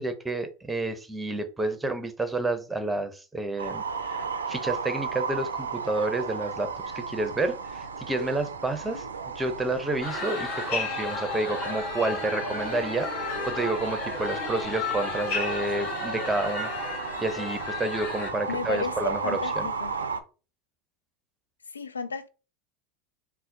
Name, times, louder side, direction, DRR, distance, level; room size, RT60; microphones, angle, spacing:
voice 1, 0.0-9.0 9.4-19.7, right 2 dB, 10° right, 0.8 m, -30 dB
sound 1, 3.6-20.2, right 5 dB, 85° right, 0.4 m, -35 dB
sound 2, 10.0-18.3, left 3 dB, 60° left, 1.6 m, -33 dB
voice 2, 18.5-20.0 21.7-22.3, left 4 dB, 90° left, 0.3 m, -33 dB
4.0 x 2.1 x 4.0 m
hypercardioid pair, 85°, 0 cm